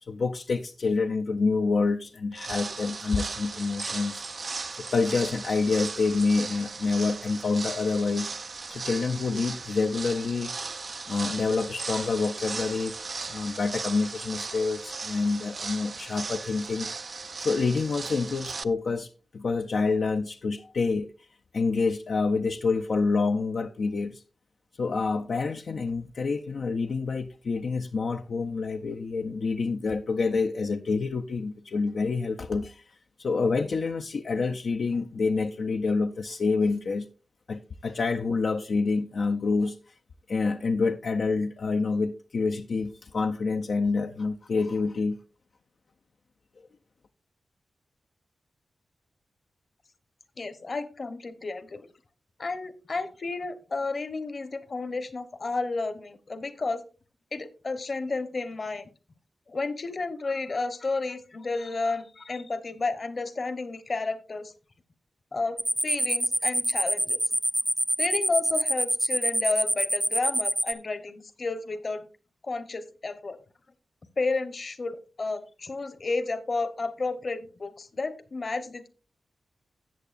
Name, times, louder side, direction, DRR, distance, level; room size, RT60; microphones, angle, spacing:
voice 1, 0.0-8.3 8.7-10.5 11.1-12.9 13.3-16.9 17.4-21.3 21.5-24.2 24.8-37.1 37.5-39.9 40.3-45.2, left 4 dB, 70° left, 0.5 m, -27 dB
sound 1, 2.3-18.6, right 4 dB, 50° right, 0.4 m, -37 dB
voice 2, 50.4-51.9 52.4-56.8 57.3-58.9 59.5-64.5 65.3-67.2 68.0-72.0 72.4-73.4 74.2-78.9, left 3 dB, 50° left, 1.0 m, -32 dB
sound 2, 65.6-70.7, right 1 dB, 10° right, 0.6 m, -25 dB
13.5 x 8.1 x 2.5 m
wide cardioid pair, 90°, 0 cm